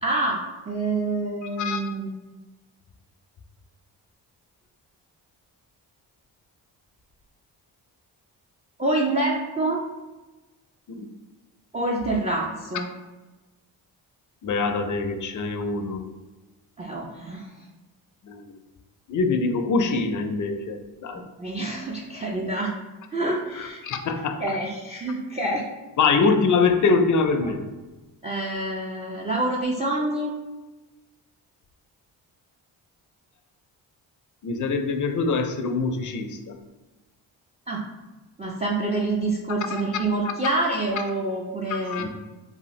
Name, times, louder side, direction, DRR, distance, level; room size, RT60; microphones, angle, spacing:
voice 1, 0.0-0.4 0.7-2.1 8.8-9.8 11.7-12.9 16.8-17.7 21.4-22.7 23.1-23.8 24.4-25.6 28.2-30.3 37.7-37.8 38.4-42.1, right 2 dB, 15° right, -2 dB, 0.4 m, -27 dB
voice 2, 14.4-16.1 18.2-18.6 19.1-21.2 23.5-24.4 26.0-27.7 34.4-36.6 39.7-39.8 41.9-42.1, left 4 dB, 40° left, 6 dB, 0.5 m, -24 dB
2.7 x 2.4 x 3.0 m, 1.1 s
supercardioid pair, 45°, 47 cm